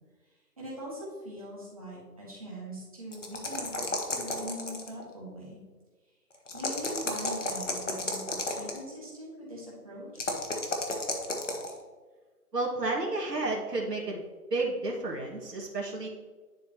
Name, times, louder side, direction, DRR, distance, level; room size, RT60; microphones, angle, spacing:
voice 1, 0.6-5.6 6.5-10.3, equal, 20° right, -7 dB, 1.8 m, -42 dB
sound 1, 3.1-5.0 6.5-8.8 10.2-11.7, left 2 dB, 50° left, 1.1 m, -32 dB
voice 2, 12.5-14.2 14.5-16.1, right 2 dB, 90° right, -2 dB, 2.0 m, -31 dB
10.0 x 4.4 x 2.9 m, 1.4 s
figure-of-eight pair, 180°, 48 cm